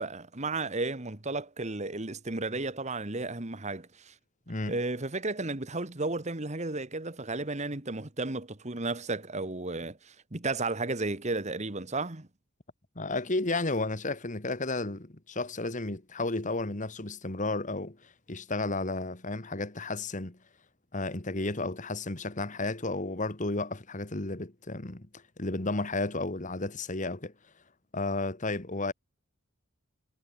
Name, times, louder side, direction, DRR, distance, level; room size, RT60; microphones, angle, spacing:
voice 1, 0.0-4.1 4.7-12.3, right 2 dB, 35° right, 1.7 m, -33 dB
voice 2, 4.5-4.8 13.0-20.4 20.9-27.3 27.9-28.9, left 2 dB, 35° left, 1.8 m, -33 dB
head